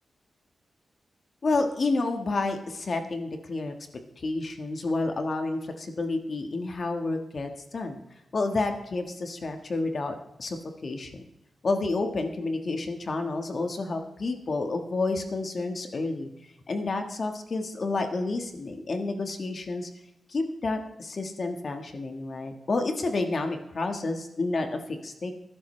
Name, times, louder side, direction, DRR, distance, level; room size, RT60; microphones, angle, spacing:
voice 1, 1.4-3.7 4.2-8.0 8.3-10.6 10.8-11.2 11.6-16.3 16.7-19.9 20.3-25.3, left 3 dB, 45° left, 5 dB, 1.4 m, -30 dB
20.0 x 11.5 x 3.2 m, 0.86 s
wide cardioid pair, 160°, 0 cm